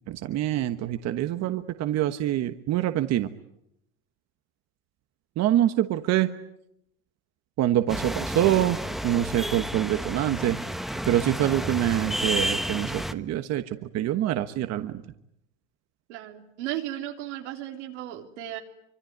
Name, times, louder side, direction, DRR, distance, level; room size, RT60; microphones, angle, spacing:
voice 1, 0.1-3.3 5.4-6.3 7.6-10.6 11.1-15.0, right 13 dB, 50° right, 9 dB, 1.3 m, -25 dB
sound 1, 7.9-13.1, equal, ahead, 1.3 m, -31 dB
voice 2, 16.1-18.6, right 13 dB, 90° right, 4 dB, 3.6 m, -35 dB
25.0 x 24.5 x 9.4 m, 0.80 s
supercardioid pair, 115°, 34 cm